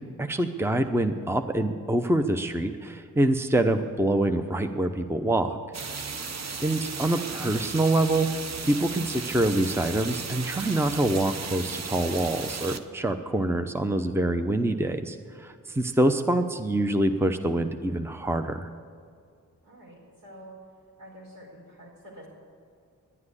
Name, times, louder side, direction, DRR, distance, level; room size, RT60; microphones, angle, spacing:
voice 1, 0.0-5.6 6.6-8.3 8.6-18.7, right 1 dB, 5° right, 8 dB, 0.8 m, -25 dB
sound 1, 5.7-12.8, right 5 dB, 50° right, 0.9 m, -35 dB
voice 2, 6.2-6.7 19.6-20.6 21.0-22.3, equal, 80° right, -3 dB, 4.4 m, -48 dB
11.0 x 9.6 x 9.9 m, 2.2 s
cardioid pair, 40°, 34 cm